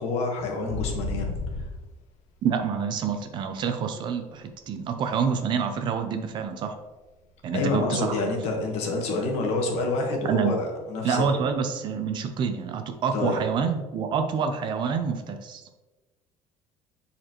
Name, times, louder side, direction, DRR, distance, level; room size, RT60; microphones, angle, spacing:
voice 1, 0.0-1.3 7.5-11.4 13.1-13.4, left 3 dB, 60° left, 2 dB, 1.3 m, -27 dB
sound 1, 0.7-4.0 4.3-6.6 6.9-7.2 7.5-9.5 9.8-9.9 10.2-10.6 10.9-11.0 13.2-13.3, left 2 dB, 80° left, 1.2 m, -35 dB
voice 2, 2.4-6.7 7.4-8.4 10.2-10.5 11.0-15.6, right 6 dB, 40° right, 7 dB, 0.5 m, -27 dB
7.6 x 4.2 x 3.0 m, 1.2 s
cardioid pair, 170°, 12 cm